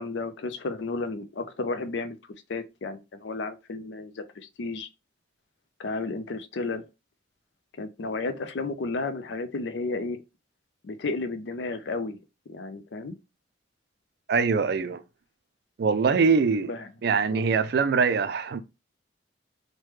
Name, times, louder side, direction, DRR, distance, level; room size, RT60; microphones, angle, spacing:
voice 1, 0.0-2.2 2.5-4.9 5.8-6.9 7.8-10.2 10.8-12.2 12.5-13.1 16.7-16.9 17.3-17.4, left 3 dB, 75° left, 0.5 m, -32 dB
voice 2, 14.3-15.0 15.8-16.7 17.0-18.6, right 5 dB, 55° right, 0.3 m, -23 dB
3.2 x 2.1 x 3.2 m
head